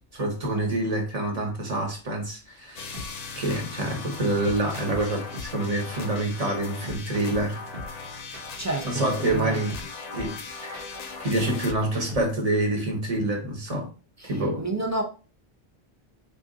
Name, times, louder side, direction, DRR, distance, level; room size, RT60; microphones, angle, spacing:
voice 1, 0.1-3.0 3.4-7.6 8.8-9.8 10.1-10.8 11.2-13.9 14.2-14.7, right 1 dB, 35° right, 1.1 m, -27 dB
sound 1, 2.8-11.7, left 4 dB, 50° left, 0.5 m, -39 dB
sound 2, 2.9-12.5, left 2 dB, 60° right, 1.1 m, -40 dB
voice 2, 8.6-9.6 14.2-15.0, right 2 dB, 20° right, 0.5 m, -30 dB
3.7 x 2.4 x 3.7 m
omnidirectional pair, 1.1 m